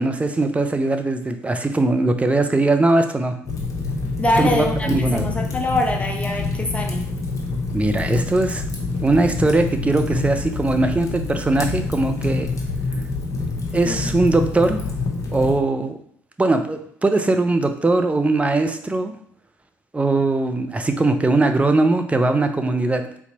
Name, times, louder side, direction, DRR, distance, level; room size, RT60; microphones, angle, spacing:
voice 1, 0.0-3.4 4.4-5.3 7.7-8.7 9.0-12.5 13.7-14.8 15.3-16.0 16.4-19.1 19.9-23.1, right 2 dB, 15° right, 6 dB, 0.6 m, -20 dB
Fire, 3.5-15.6, left 3 dB, 40° left, 1.1 m, -26 dB
voice 2, 4.2-7.0 13.9-14.1, left 1 dB, 15° left, 2 dB, 1.0 m, -24 dB
4.2 x 4.0 x 2.9 m, 0.64 s
figure-of-eight pair, 50°, 8 cm